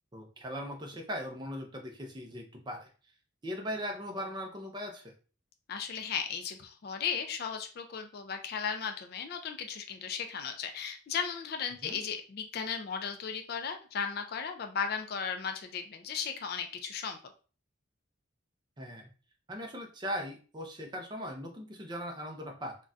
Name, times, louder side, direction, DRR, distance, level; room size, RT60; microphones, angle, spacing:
voice 1, 0.1-2.9 3.4-5.1 11.8-12.0 18.8-19.1 19.5-22.8, equal, 20° right, 2 dB, 0.5 m, -39 dB
voice 2, 5.7-17.2, left 6 dB, 45° left, 6 dB, 0.3 m, -36 dB
3.8 x 2.2 x 2.3 m, 0.37 s
head